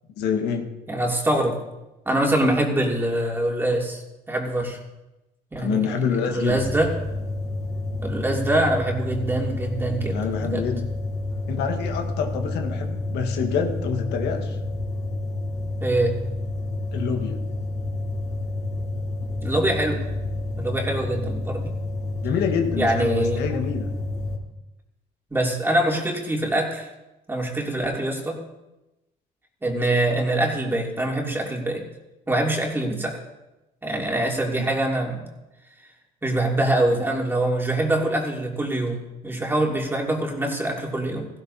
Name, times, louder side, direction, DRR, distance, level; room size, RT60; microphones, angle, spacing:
voice 1, 0.2-0.7 5.6-6.6 10.1-10.9 11.5-14.6 16.9-17.4 22.2-23.9 34.6-34.7, left 6 dB, 85° left, 4 dB, 1.6 m, -26 dB
voice 2, 0.9-1.6 2.1-4.8 5.5-6.0 6.3-6.9 8.0-10.7 15.8-16.1 19.4-20.0 20.6-21.7 22.8-23.4 25.3-26.9 27.3-28.4 29.6-31.8 32.3-33.2 33.8-35.2 36.2-41.3, right 1 dB, 15° right, -1 dB, 2.9 m, -24 dB
sound 1, 6.5-24.4, left 2 dB, 20° left, 3.3 m, -29 dB
17.0 x 15.5 x 2.9 m, 0.98 s
cardioid pair, 110°, 17 cm